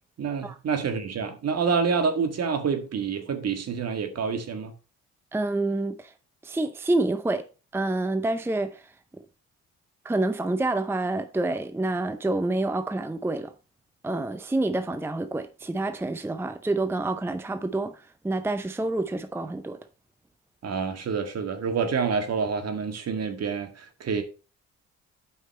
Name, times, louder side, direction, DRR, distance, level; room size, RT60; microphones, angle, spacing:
voice 1, 0.2-4.7 20.6-24.2, right 5 dB, 55° right, 1.7 m, -27 dB
voice 2, 5.3-6.1 6.4-7.5 7.7-8.9 10.0-13.5 14.0-19.8, right 2 dB, 10° right, 0.6 m, -28 dB
8.2 x 5.6 x 4.3 m
cardioid pair, 90°, 30 cm